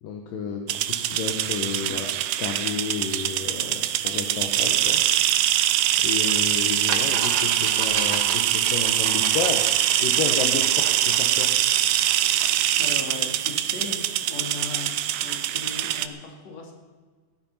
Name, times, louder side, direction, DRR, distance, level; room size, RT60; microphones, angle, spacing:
voice 1, 0.0-2.1 2.4-5.0 6.0-11.5, left 6 dB, 75° left, 3 dB, 2.7 m, -31 dB
sound 1, 0.7-16.1, right 12 dB, 75° right, 2.0 m, -23 dB
sound 2, 6.3-6.4 6.9-12.6, right 6 dB, 60° right, 2.3 m, -33 dB
voice 2, 12.8-14.0 14.3-14.9 15.2-16.7, left 4 dB, 50° left, 1 dB, 3.3 m, -37 dB
16.5 x 12.0 x 5.5 m, 1.4 s
omnidirectional pair, 4.2 m